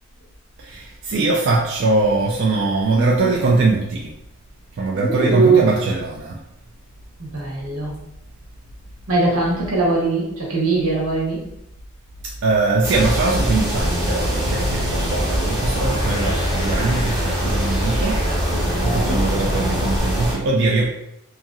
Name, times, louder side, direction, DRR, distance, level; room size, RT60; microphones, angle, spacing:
voice 1, 0.6-4.1 4.8-6.4 12.2-20.9, right 3 dB, 60° right, -2 dB, 0.3 m, -21 dB
voice 2, 2.9-3.3 4.9-5.7 7.2-7.9 9.1-11.4 18.5-19.2, right 3 dB, 90° right, -4 dB, 1.1 m, -21 dB
sound 1, 12.8-20.3, equal, 20° right, 0.9 m, -23 dB
sound 2, 13.8-20.0, equal, 20° left, 0.5 m, -28 dB
2.8 x 2.6 x 2.5 m, 0.82 s
head